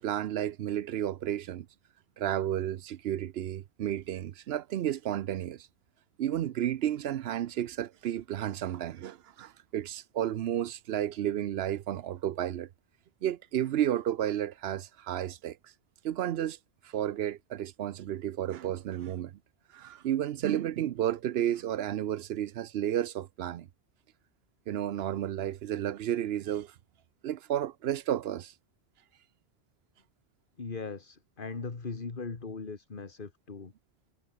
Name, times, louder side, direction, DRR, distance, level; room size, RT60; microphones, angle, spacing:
voice 1, 0.0-1.7 2.2-5.7 6.2-12.7 13.2-15.7 16.0-16.6 16.8-19.4 19.7-23.7 24.7-26.7 27.2-28.5, right 11 dB, 75° right, 0.8 m, -32 dB
voice 2, 30.6-33.7, left 4 dB, 55° left, 2.0 m, -39 dB
omnidirectional pair, 1.1 m